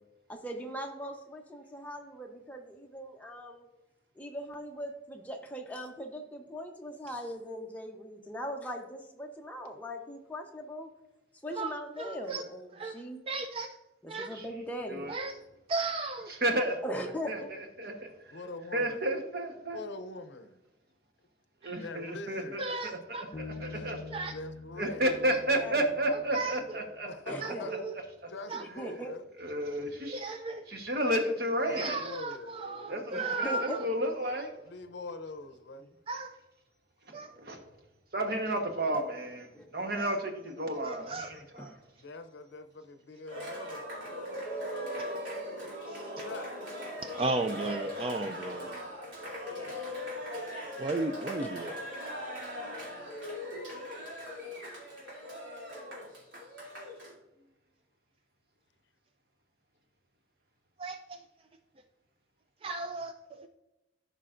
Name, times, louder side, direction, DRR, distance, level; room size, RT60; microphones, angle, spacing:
voice 1, 0.3-3.7 4.1-10.9 11.4-13.2 14.0-15.1 16.8-17.5 25.6-25.8 27.3-27.7 28.5-29.1 32.9-33.8 39.5-39.9 41.6-41.7 51.4-51.5, equal, 10° left, 0.8 m, -40 dB
voice 2, 11.5-12.4 12.8-12.9 13.3-13.8 14.1-14.3 15.1-15.4 15.7-16.3 21.6-21.7 22.6-23.2 24.1-24.3 25.2-25.4 26.3-26.6 27.4-27.9 28.5-28.6 30.1-30.6 31.8-33.9 36.1-36.3 37.1-37.3 40.0-40.2 40.8-41.3 45.0-45.2 45.9-46.3 47.0-48.7 50.8-51.7 60.8-61.2 62.6-63.5, right 3 dB, 30° right, 0.3 m, -35 dB
voice 3, 16.3-16.8 17.3-18.4 18.7-19.8 21.6-24.0 24.8-27.1 29.4-30.2 30.7-32.0 32.9-34.5 37.1-37.6 38.1-41.8 43.7-43.8 47.7-47.9 53.0-53.3, right 1 dB, 55° right, 1.1 m, -32 dB
voice 4, 18.3-19.1 19.7-20.6 21.8-22.9 23.7-24.0 24.3-25.1 27.1-27.8 28.3-29.3 31.6-32.9 34.5-35.8 41.9-43.9 46.2-46.6 55.7-55.8 57.3-57.5, left 2 dB, 70° left, 0.6 m, -44 dB
Bass guitar, 23.3-26.9, left 4 dB, 45° left, 0.8 m, -46 dB
Cheering, 43.3-57.1, equal, 85° right, 2.8 m, -39 dB
14.0 x 5.0 x 2.5 m
head